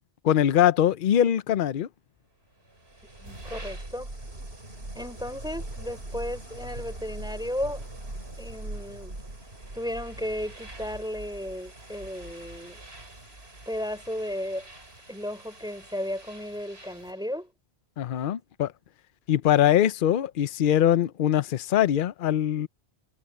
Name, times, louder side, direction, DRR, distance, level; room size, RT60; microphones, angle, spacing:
voice 1, 0.2-1.9 18.0-18.7 19.3-22.7, left 10 dB, 60° left, 0.7 m, -22 dB
sound 1, 2.6-17.3, right 2 dB, 75° right, 4.9 m, -42 dB
voice 2, 3.2-4.1 4.9-7.8 8.4-9.2 9.7-12.8 13.7-14.7 15.1-17.5, left 1 dB, 5° right, 4.0 m, -34 dB
omnidirectional pair, 1.0 m